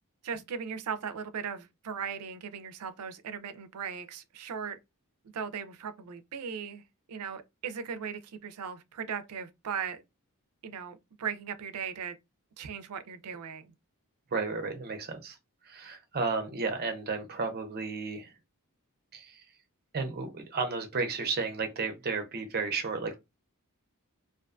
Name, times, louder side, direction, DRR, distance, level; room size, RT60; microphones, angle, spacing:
voice 1, 0.2-4.8 5.3-6.8 7.1-10.0 10.6-12.2 12.6-13.7, right 7 dB, 90° right, 0.4 m, -38 dB
voice 2, 14.3-15.4 15.6-18.3 19.1-19.4 19.9-23.2, right 4 dB, 45° right, 0.6 m, -33 dB
2.5 x 2.2 x 2.4 m
head